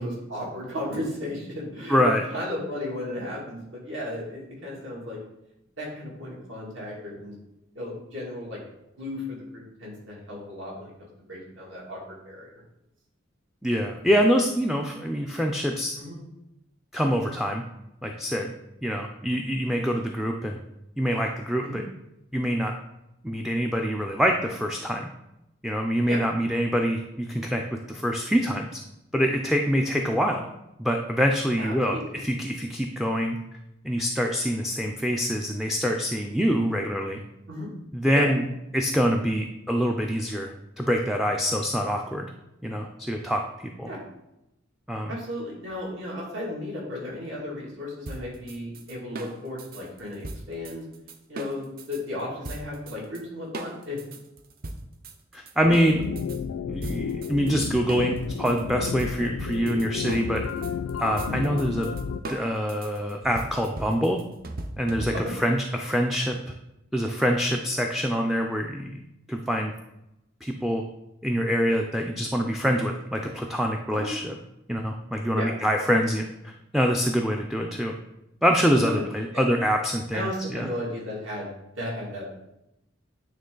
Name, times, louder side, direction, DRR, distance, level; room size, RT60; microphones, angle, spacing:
voice 1, 0.0-5.2 5.8-7.3 7.7-8.6 9.0-12.6 16.0-16.2 21.6-21.8 26.0-26.2 31.6-32.1 37.5-37.7 38.1-38.3 43.9-44.0 45.1-50.8 51.3-54.0 59.2-59.4 61.3-61.4 65.1-65.3 73.9-74.1 75.4-75.5 79.0-79.1 79.3-79.4 80.1-81.5 81.8-82.3, left 1 dB, 70° right, -4 dB, 2.4 m, -35 dB
voice 2, 1.9-2.2 13.6-16.0 16.9-17.6 18.0-18.5 18.8-20.6 21.0-21.8 22.3-22.7 23.2-25.1 25.6-27.6 27.9-28.7 29.1-30.4 30.8-33.4 33.8-37.2 37.9-38.5 38.7-42.3 42.6-43.4 43.8-43.9 44.9-45.2 55.3-56.0 56.7-60.4 61.0-61.9 62.3-64.2 64.8-66.4 66.9-69.0 69.3-69.7 70.4-70.8 71.2-74.4 74.7-77.9 78.4-80.7, equal, ahead, 2 dB, 0.4 m, -25 dB
sound 1, 48.1-52.0 52.4-53.2 53.5-56.4 56.8-65.5, right 2 dB, 50° right, 0.6 m, -39 dB
sound 2, 55.6-62.2, left 6 dB, 75° left, 0.3 m, -32 dB
8.9 x 3.2 x 3.9 m, 0.89 s
head